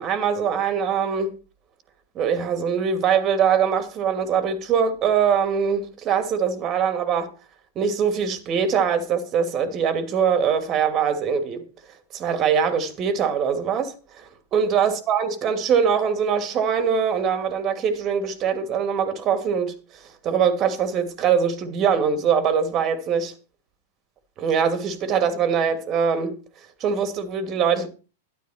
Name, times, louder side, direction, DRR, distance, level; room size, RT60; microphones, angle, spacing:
voice 1, 0.0-1.4 2.1-7.3 7.8-11.6 12.1-19.7 20.2-23.3 24.4-26.4 26.8-27.9, right 7 dB, 35° right, 2.5 m, -22 dB
12.5 x 11.5 x 4.4 m
figure-of-eight pair, 100°, 0 cm